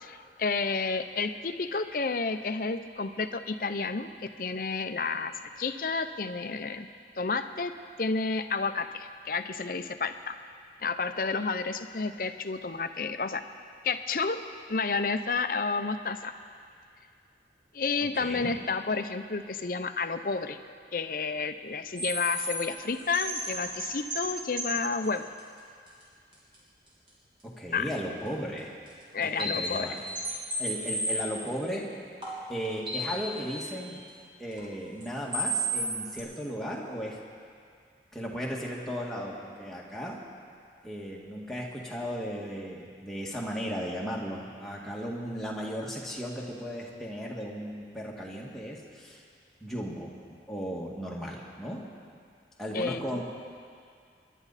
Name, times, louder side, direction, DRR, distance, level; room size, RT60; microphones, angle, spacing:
voice 1, 0.0-4.1 4.4-6.9 7.2-10.4 10.8-13.4 13.8-14.4 14.7-16.3 17.7-20.6 20.9-25.3 27.7-27.9 29.1-29.9 52.7-53.2, left 4 dB, 50° left, 9 dB, 0.6 m, -31 dB
voice 2, 18.2-18.6 27.4-28.7 29.4-30.0 30.6-31.8 32.5-34.0 34.4-37.2 38.1-40.2 40.8-49.2 49.6-51.8 52.6-53.2, equal, ahead, -4 dB, 1.8 m, -36 dB
sound 1, 22.0-24.3 24.6-24.8 25.4-25.5 25.9-26.0 26.3-26.4 28.9-29.0 29.2-31.6 32.2-33.4 33.7-33.8 34.6-34.7 35.0-35.1 35.3-36.2, right 1 dB, 30° right, 2.9 m, -32 dB
26.5 x 11.0 x 4.2 m, 2.2 s
head